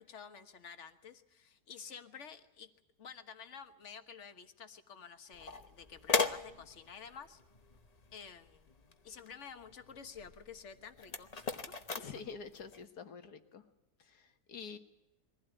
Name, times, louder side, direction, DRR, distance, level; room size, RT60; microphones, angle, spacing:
voice 1, 0.0-2.7 3.0-7.4 8.1-8.7 9.0-11.5 12.0-12.2, left 6 dB, 45° left, 9 dB, 1.5 m, -51 dB
sound 1, 5.3-12.8, left 4 dB, 30° left, 0.9 m, -39 dB
voice 2, 12.0-13.6 14.0-14.8, left 5 dB, 70° left, 8 dB, 2.0 m, -47 dB
22.5 x 15.5 x 9.0 m, 0.94 s
omnidirectional pair, 1.8 m